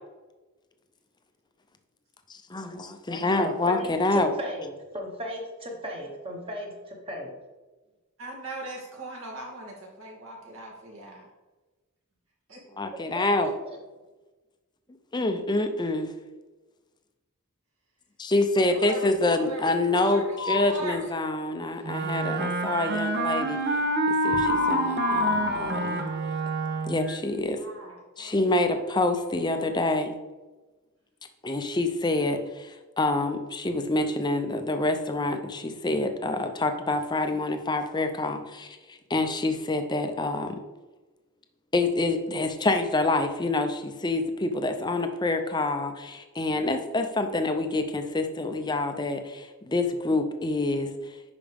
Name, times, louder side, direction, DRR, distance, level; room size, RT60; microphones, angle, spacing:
voice 1, 2.3-4.3 12.8-13.5 15.1-16.1 18.2-23.6 24.1-26.0 26.9-27.6 28.2-30.1 31.4-40.6 41.7-50.9, left 2 dB, 20° left, 7 dB, 0.6 m, -27 dB
voice 2, 3.4-7.3 13.1-13.8, equal, 25° right, 0 dB, 1.4 m, -36 dB
voice 3, 8.2-11.2 12.5-12.6 18.7-21.3 27.6-28.7, right 1 dB, 65° right, -3 dB, 2.6 m, -40 dB
sound 1, 20.3-20.9 24.2-27.0, left 4 dB, 50° left, 1.0 m, -29 dB
Wind instrument woodwind instrument, 21.8-27.2, right 2 dB, 50° right, 0.7 m, -28 dB
10.0 x 4.9 x 3.5 m, 1.2 s
head